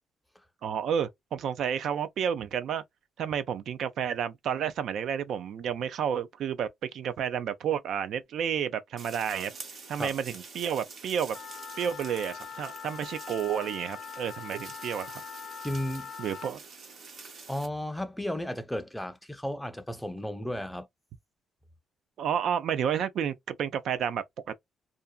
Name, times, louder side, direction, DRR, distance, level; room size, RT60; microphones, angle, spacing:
voice 1, 0.6-2.8 3.2-9.5 9.9-11.4 11.8-15.2 16.2-16.6 22.2-24.5, right 8 dB, 70° right, 0.4 m, -31 dB
sound 1, 9.0-17.7, right 4 dB, 55° right, 0.9 m, -47 dB
Wind instrument woodwind instrument, 11.3-16.5, left 8 dB, 65° left, 0.5 m, -42 dB
voice 2, 15.6-16.1 17.5-20.9, left 1 dB, 5° left, 0.4 m, -34 dB
2.5 x 2.2 x 2.3 m
cardioid pair, 90°, 0 cm